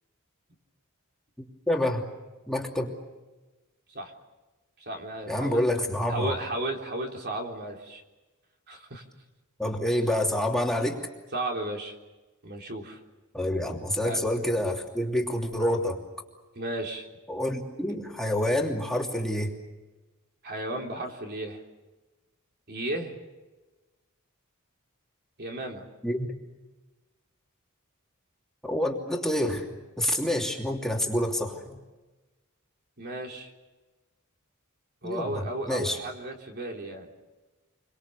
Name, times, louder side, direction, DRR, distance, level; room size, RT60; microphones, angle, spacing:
voice 1, 1.4-2.0 2.5-2.9 5.3-6.4 9.6-11.0 13.3-16.0 17.3-19.6 26.0-26.3 28.6-29.7 30.0-31.8 35.0-36.0, left 1 dB, ahead, -1 dB, 2.9 m, -27 dB
voice 2, 4.8-5.6 6.1-8.0 8.7-9.0 11.3-12.0 12.4-13.0 14.0-14.2 16.6-17.1 20.4-21.6 22.7-23.2 25.4-25.9 33.0-33.5 35.0-37.1, right 1 dB, 50° right, 1 dB, 3.7 m, -34 dB
29.0 x 24.5 x 6.9 m, 1.2 s
head